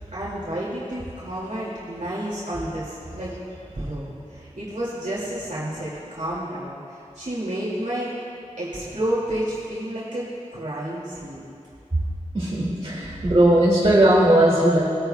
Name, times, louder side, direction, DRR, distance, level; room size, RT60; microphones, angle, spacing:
voice 1, 0.1-3.3 3.7-8.1 8.6-11.4 13.0-13.2, right 1 dB, 75° right, -8 dB, 2.4 m, -30 dB
voice 2, 12.3-14.8, right 1 dB, 45° right, -8 dB, 2.3 m, -18 dB
19.5 x 9.3 x 2.3 m, 2.5 s
wide cardioid pair, 45°, 13 cm